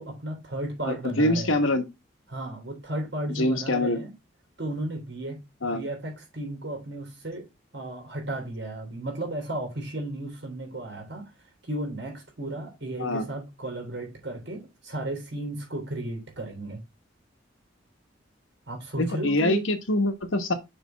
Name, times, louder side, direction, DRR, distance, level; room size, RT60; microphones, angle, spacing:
voice 1, 0.0-1.6 2.3-4.1 4.6-5.4 5.7-7.5 7.7-11.3 11.6-16.8 18.7-19.6, right 1 dB, 65° right, 3.3 m, -34 dB
voice 2, 0.8-1.8 3.3-4.0 5.6-5.8 13.0-13.3 19.0-20.5, left 1 dB, 85° left, 1.3 m, -25 dB
6.7 x 3.4 x 5.7 m
head